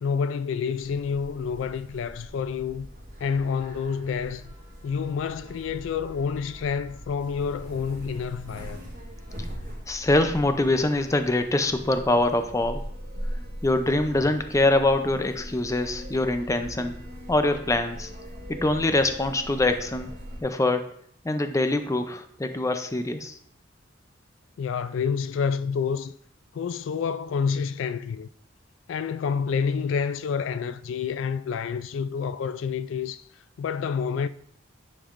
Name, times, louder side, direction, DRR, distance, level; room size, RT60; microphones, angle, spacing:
voice 1, 0.0-2.9 3.2-4.5 4.8-8.8 24.6-26.1 26.5-28.3 28.9-33.2 33.6-34.3, left 6 dB, 70° left, 0.3 m, -28 dB
sound 1, 0.8-20.4, equal, 40° right, 2.3 m, -40 dB
voice 2, 9.9-12.8 13.6-16.9 17.3-18.1 18.5-20.1 20.4-20.9 21.2-23.4, left 2 dB, 15° left, 0.5 m, -24 dB
9.9 x 5.4 x 2.5 m
head